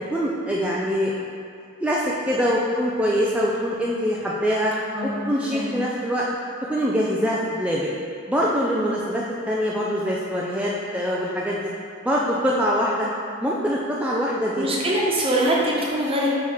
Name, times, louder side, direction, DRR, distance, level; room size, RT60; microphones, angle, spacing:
voice 1, 0.1-1.1 1.8-4.7 5.0-6.3 6.7-7.9 8.3-11.7 12.0-13.1 13.4-14.7, equal, 5° right, -5 dB, 0.4 m, -24 dB
voice 2, 4.9-5.7 14.6-16.3, right 1 dB, 25° right, -4 dB, 1.1 m, -23 dB
5.6 x 4.4 x 4.6 m, 2.3 s
head